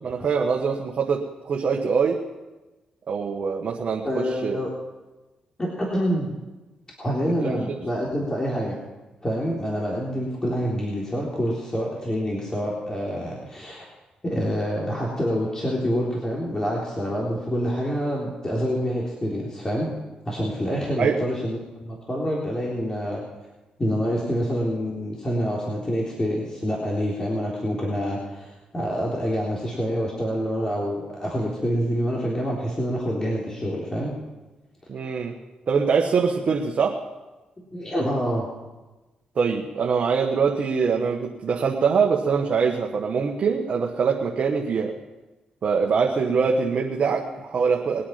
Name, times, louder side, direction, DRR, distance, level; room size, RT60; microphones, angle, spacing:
voice 1, 0.0-1.2 1.4-2.2 3.1-4.0 4.4-4.6 7.2-7.6 21.0-21.1 34.9-35.3 35.7-36.9 39.3-44.9 45.6-48.0, right 5 dB, 55° right, 0 dB, 1.6 m, -23 dB
voice 2, 4.0-4.7 5.6-6.3 7.0-8.8 9.2-13.9 14.2-19.9 20.3-23.2 23.8-28.5 28.7-34.1 37.7-38.5, equal, 25° left, -4 dB, 3.7 m, -27 dB
22.0 x 8.6 x 5.9 m, 1.1 s
cardioid pair, 70°, 3 cm